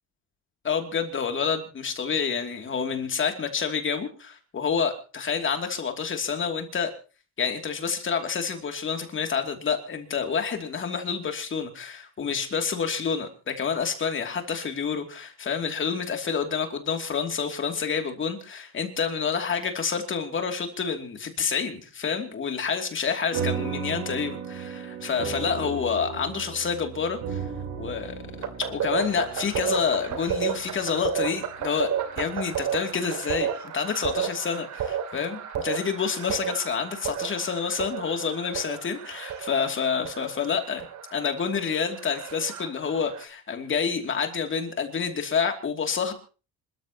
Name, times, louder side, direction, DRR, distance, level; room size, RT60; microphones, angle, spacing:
voice 1, 0.6-6.9 7.4-27.4 27.8-28.2 28.6-31.9 32.2-40.9 41.1-46.1, left 6 dB, 35° left, 5 dB, 2.8 m, -28 dB
sound 1, 23.3-32.1, right 7 dB, 90° right, 6.0 m, -35 dB
sound 2, 28.4-43.2, right 8 dB, 60° right, 2.4 m, -32 dB
26.5 x 13.5 x 3.0 m, 0.35 s
cardioid pair, 115°, 34 cm